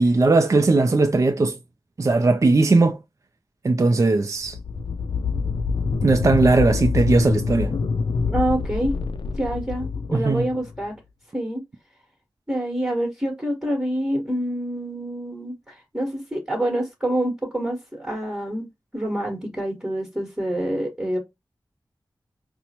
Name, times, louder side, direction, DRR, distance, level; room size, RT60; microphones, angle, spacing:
voice 1, 0.0-1.6 2.0-3.0 3.6-4.6 6.0-7.8 10.1-10.5, right 3 dB, 40° right, 0.4 m, -18 dB
sound 1, 4.4-10.8, left 5 dB, 75° left, 0.4 m, -26 dB
voice 2, 8.3-8.9 9.4-10.9 11.3-11.6 12.5-18.6 18.9-21.2, right 1 dB, 10° right, 1.3 m, -26 dB
4.2 x 2.1 x 2.8 m
cardioid pair, 50°, 8 cm